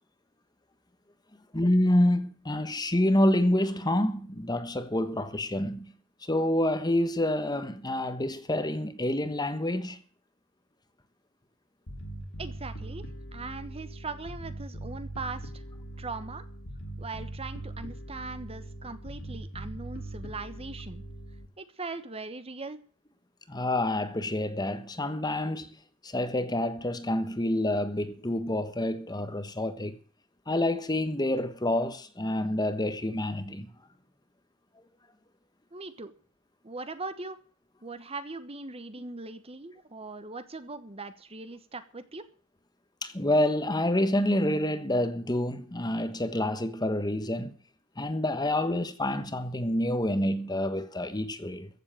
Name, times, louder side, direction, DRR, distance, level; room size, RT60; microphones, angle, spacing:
voice 1, 1.5-5.9 6.2-10.0 23.5-25.7 26.0-30.0 30.5-33.7 43.0-47.5 48.0-51.7, left 1 dB, 20° left, 1.3 m, -27 dB
Bass guitar, 11.9-21.5, right 1 dB, 65° left, 2.8 m, -41 dB
voice 2, 12.4-13.0 13.3-15.6 16.0-16.4 17.0-21.0 21.6-22.8 35.7-36.1 36.6-37.4 37.8-42.3, right 3 dB, 25° right, 1.2 m, -40 dB
15.0 x 7.6 x 8.8 m
head